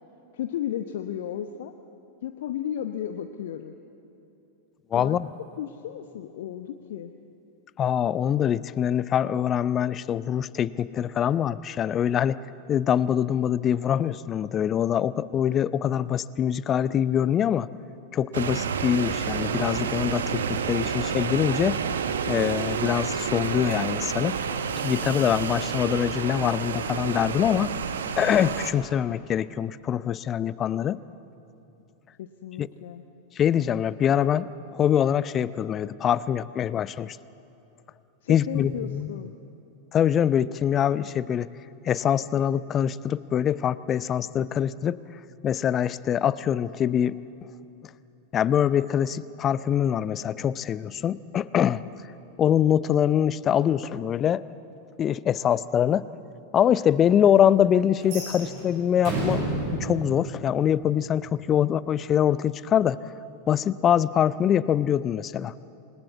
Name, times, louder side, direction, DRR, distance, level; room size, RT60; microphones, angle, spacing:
voice 1, 0.3-1.7 2.2-3.7 4.9-5.2 5.6-7.1 32.2-33.0 38.2-39.3, left 10 dB, 55° left, 7 dB, 0.9 m, -34 dB
voice 2, 4.9-5.3 7.8-12.4 12.7-17.7 18.1-21.8 22.3-24.4 24.8-27.7 28.2-31.0 32.6-32.7 33.4-37.2 38.3-39.1 39.9-41.5 41.8-45.0 45.4-47.2 48.3-51.8 52.4-54.4 55.0-56.1 56.5-59.4 59.7-63.0 63.5-65.5, left 9 dB, 25° left, 18 dB, 0.6 m, -24 dB
sound 1, 18.3-28.7, right 6 dB, 65° right, 1.4 m, -29 dB
sound 2, 58.0-61.1, right 2 dB, 45° right, 7.2 m, -31 dB
28.0 x 20.5 x 8.5 m, 2.9 s
figure-of-eight pair, 90°, 0 cm